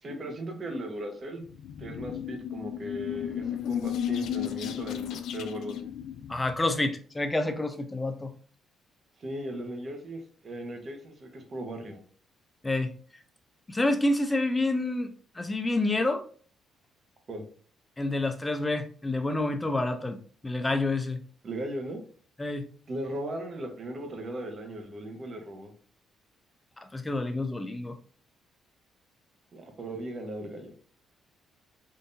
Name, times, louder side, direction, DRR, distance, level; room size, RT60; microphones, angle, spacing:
voice 1, 0.0-1.4 1.8-5.9 9.2-12.0 17.3-17.4 21.4-22.0 22.9-25.7 29.5-30.7, right 1 dB, 45° right, 4 dB, 1.0 m, -37 dB
sound 1, 1.4-6.8, left 9 dB, 75° left, 0.3 m, -34 dB
voice 2, 6.3-8.3 12.6-12.9 13.7-16.2 18.0-20.2 20.4-21.2 22.4-22.7 26.8-28.0, left 2 dB, 15° left, 8 dB, 0.5 m, -28 dB
3.8 x 2.7 x 2.6 m, 0.43 s
cardioid pair, 90°, 0 cm